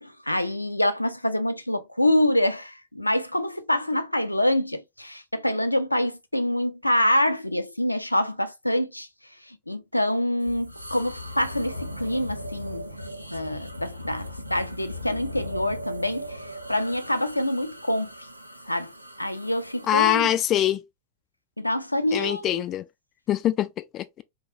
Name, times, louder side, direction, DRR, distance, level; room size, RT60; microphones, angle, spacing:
voice 1, 0.0-9.1 9.5-12.9 13.3-18.1 18.7-18.9 19.2-20.4 21.6-22.6, left 1 dB, 85° left, 0.5 m, -26 dB
sound 1, 10.4-20.2, equal, 90° right, 0.5 m, -38 dB
voice 2, 19.9-20.8 22.1-22.9 23.3-24.1, left 12 dB, 30° left, 0.3 m, -23 dB
3.8 x 3.4 x 2.9 m
figure-of-eight pair, 90°, 0 cm